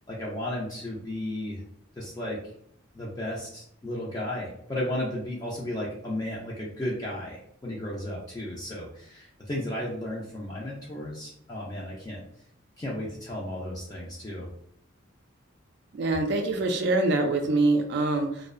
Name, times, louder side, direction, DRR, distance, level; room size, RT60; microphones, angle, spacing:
voice 1, 0.1-1.6 2.0-2.4 2.9-12.2 12.8-14.5, left 1 dB, 20° left, -5 dB, 0.4 m, -34 dB
voice 2, 15.9-18.5, right 2 dB, 60° right, 4 dB, 0.3 m, -25 dB
2.5 x 2.0 x 2.4 m, 0.67 s
head